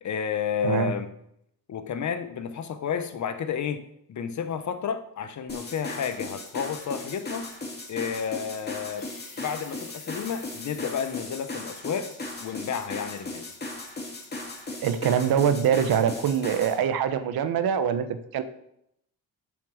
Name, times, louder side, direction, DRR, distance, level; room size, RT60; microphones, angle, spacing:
voice 1, 0.0-1.1 1.7-3.8 4.1-7.5 7.9-9.1 9.4-12.1 12.4-13.5, left 7 dB, 50° left, 10 dB, 0.9 m, -31 dB
voice 2, 0.6-1.0 14.8-18.4, right 8 dB, 75° right, 11 dB, 1.0 m, -24 dB
sound 1, 5.5-16.8, left 2 dB, 25° left, 2.3 m, -37 dB
sound 2, 9.0-14.2, left 4 dB, 90° left, 4.4 m, -50 dB
8.3 x 7.3 x 6.4 m, 0.77 s
cardioid pair, 140°, 36 cm